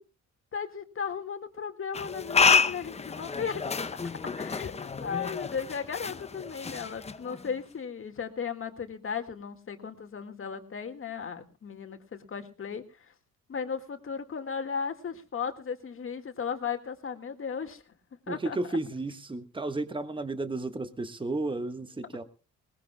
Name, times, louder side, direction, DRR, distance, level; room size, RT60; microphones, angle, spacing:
voice 1, 0.5-3.6 4.4-13.1 13.5-17.8 18.3-18.6, left 6 dB, 45° left, 6 dB, 1.9 m, -36 dB
sound 1, 1.9-7.6, left 5 dB, 20° left, 0.7 m, -29 dB
voice 2, 18.3-22.2, right 2 dB, 15° right, 10 dB, 1.4 m, -33 dB
21.0 x 19.0 x 2.3 m, 0.33 s
cardioid pair, 90°, 30 cm